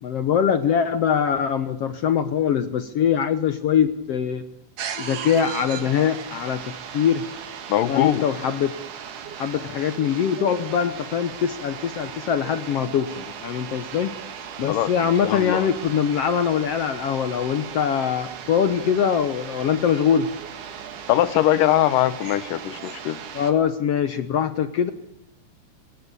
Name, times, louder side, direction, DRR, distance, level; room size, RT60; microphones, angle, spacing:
voice 1, 0.0-4.4 5.0-6.6 6.9-7.2 7.9-8.7 9.4-14.1 14.6-20.3 23.3-24.9, left 8 dB, 65° left, 11 dB, 1.7 m, -23 dB
sound 1, 4.8-23.5, right 8 dB, 70° right, 3.4 m, -37 dB
voice 2, 7.7-8.3 14.7-14.9 15.2-15.7 21.1-23.2, left 13 dB, 85° left, 15 dB, 2.7 m, -21 dB
29.0 x 20.0 x 6.9 m, 0.77 s
omnidirectional pair, 3.7 m